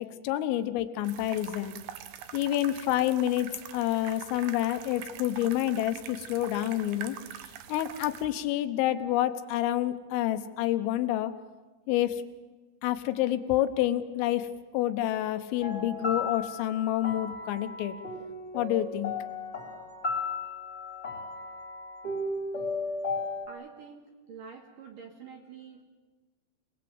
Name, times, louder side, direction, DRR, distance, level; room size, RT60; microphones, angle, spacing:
voice 1, 0.0-1.8 2.3-7.2 7.7-11.3 11.9-12.2 12.8-18.0 18.6-19.1, left 13 dB, 85° left, 9 dB, 3.7 m, -28 dB
sound 1, 1.0-8.3, right 10 dB, 75° right, 2.3 m, -44 dB
sound 2, 15.6-23.5, left 3 dB, 15° left, 2.8 m, -35 dB
voice 2, 23.5-25.8, right 6 dB, 55° right, 3 dB, 2.6 m, -47 dB
27.5 x 20.0 x 7.9 m, 1.3 s
omnidirectional pair, 5.8 m